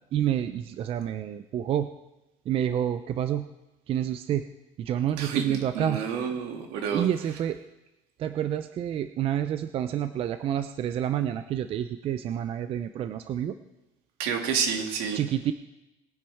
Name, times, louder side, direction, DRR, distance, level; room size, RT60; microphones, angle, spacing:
voice 1, 0.1-1.9 2.5-3.5 3.9-4.5 4.8-6.0 6.9-7.6 8.2-13.6 15.1-15.5, right 10 dB, 40° right, 9 dB, 0.5 m, -28 dB
voice 2, 5.2-7.1 14.2-15.2, right 6 dB, 75° right, 3 dB, 2.4 m, -29 dB
21.0 x 9.9 x 3.5 m, 0.95 s
cardioid pair, 145°, 15 cm